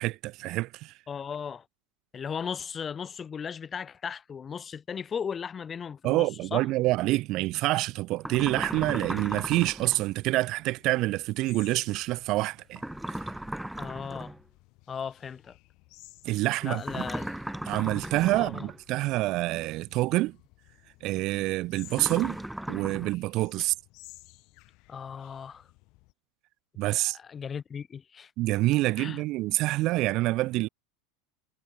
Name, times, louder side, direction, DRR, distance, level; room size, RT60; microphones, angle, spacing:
voice 1, 0.0-0.9 6.0-12.8 16.2-16.8 17.7-20.4 21.0-22.4 22.7-23.7 26.8-27.2 28.4-30.7, right 18 dB, 50° right, 0.4 m, -27 dB
voice 2, 1.1-1.7 2.1-6.6 13.8-14.3 14.9-15.6 16.6-17.3 18.3-18.7 23.6-23.7 24.9-25.6 27.1-28.3 29.0-29.2, left 7 dB, 25° left, 2.0 m, -36 dB
sound 1, 8.2-10.0 12.8-14.4 16.8-18.8 21.9-23.1, right 1 dB, 5° right, 0.5 m, -36 dB
sound 2, 9.6-26.1, left 25 dB, 55° left, 6.2 m, -57 dB
hypercardioid pair, 100°, 0 cm